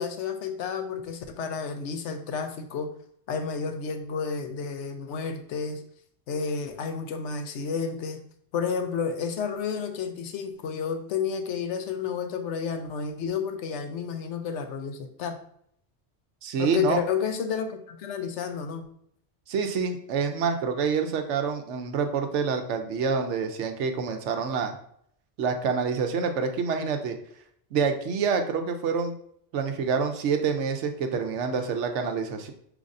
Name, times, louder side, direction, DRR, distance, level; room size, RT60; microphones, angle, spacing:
voice 1, 0.0-2.9 3.3-5.8 6.3-8.2 8.5-15.4 16.6-18.8, left 6 dB, 80° left, 7 dB, 0.9 m, -31 dB
voice 2, 16.4-17.0 19.5-24.7 25.4-27.2 27.7-29.1 29.5-32.5, right 5 dB, 80° right, 6 dB, 0.9 m, -27 dB
5.1 x 3.3 x 2.5 m, 0.68 s
omnidirectional pair, 1.2 m